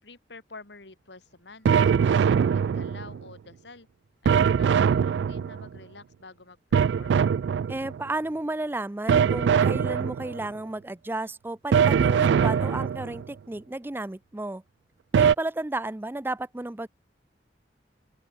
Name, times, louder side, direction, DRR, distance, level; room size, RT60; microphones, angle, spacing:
voice 1, 0.0-3.9 4.2-7.2, left 3 dB, 80° left, 2.7 m, -49 dB
sound 1, 1.7-3.2 4.3-5.8 6.7-8.0 9.1-10.5 11.7-13.2 15.1-15.3, right 7 dB, 80° right, 0.3 m, -22 dB
voice 2, 7.7-14.6 15.1-16.9, right 2 dB, 10° right, 0.4 m, -33 dB
open air
head